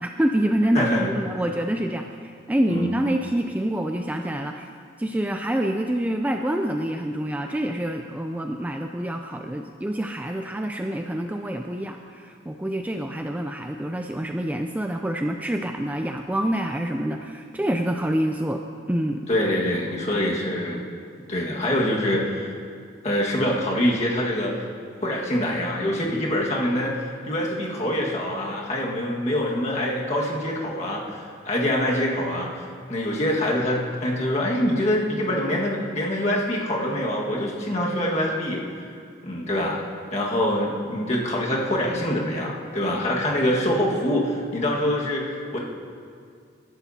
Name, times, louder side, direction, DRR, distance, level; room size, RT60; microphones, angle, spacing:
voice 1, 0.0-4.7 5.0-18.6 18.9-19.3, right 1 dB, 10° right, 4 dB, 0.3 m, -26 dB
voice 2, 0.8-1.1 2.7-3.0 19.3-20.8 21.2-22.6 23.0-24.7 25.0-38.9 39.2-39.8 40.1-45.6, left 1 dB, 35° left, -3 dB, 1.7 m, -25 dB
18.5 x 11.5 x 2.8 m, 2.2 s
head